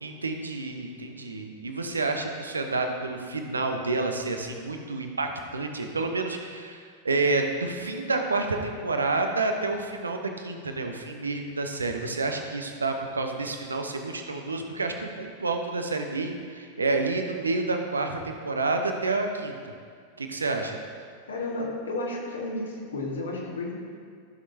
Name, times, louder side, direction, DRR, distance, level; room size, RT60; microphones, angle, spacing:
voice 1, 0.0-19.6 20.2-20.8, right 3 dB, 75° right, 4 dB, 0.8 m, -29 dB
voice 2, 21.3-23.8, left 2 dB, 70° left, -2 dB, 1.6 m, -32 dB
14.0 x 6.5 x 2.7 m, 2.1 s
figure-of-eight pair, 90°, 0 cm